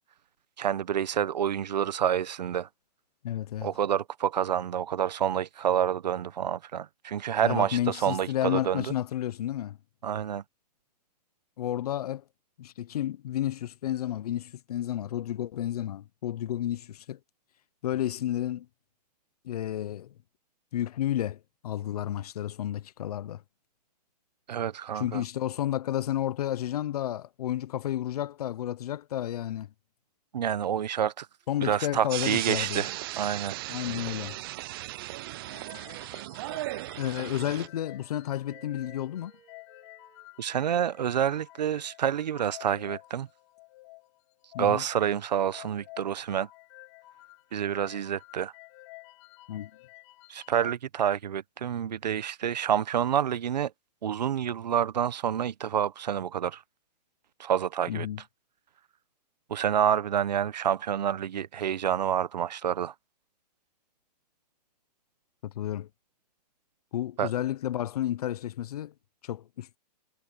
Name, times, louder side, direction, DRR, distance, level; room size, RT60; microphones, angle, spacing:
voice 1, 0.6-2.7 3.6-8.9 10.0-10.4 24.5-25.2 30.3-31.3 31.6-33.6 40.4-43.3 44.6-46.5 47.5-48.5 50.3-53.7 54.0-56.6 57.4-58.1 59.5-62.9 67.2-67.3, right 9 dB, 85° right, 1.0 m, -28 dB
voice 2, 3.2-3.7 7.4-9.8 11.6-12.2 12.6-17.2 17.8-18.7 19.4-20.1 20.7-23.4 24.9-29.7 31.5-32.8 33.7-34.4 37.0-39.3 44.5-44.8 49.5-49.7 57.9-58.2 65.4-65.9 66.9-68.9 69.2-69.8, left 12 dB, 65° left, 0.9 m, -31 dB
Wind instrument woodwind instrument, 31.4-36.1 36.6-41.5, right 8 dB, 15° right, 3.8 m, -59 dB
sound 1, 32.1-37.7, right 18 dB, 35° right, 0.5 m, -36 dB
sound 2, 35.4-50.8, left 21 dB, 40° left, 5.4 m, -51 dB
hypercardioid pair, 155°, 21 cm